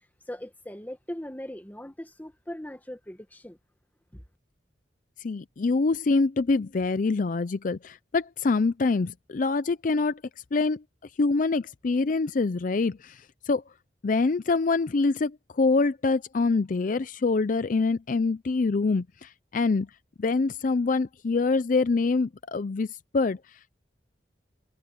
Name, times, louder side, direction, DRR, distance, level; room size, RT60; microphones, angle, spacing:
voice 1, 0.3-3.6 4.1-4.2, left 1 dB, 10° left, 1.5 m, -39 dB
voice 2, 5.2-10.2 10.5-10.8 11.2-13.6 14.0-19.9 20.2-23.7, left 3 dB, 45° left, 0.5 m, -25 dB
head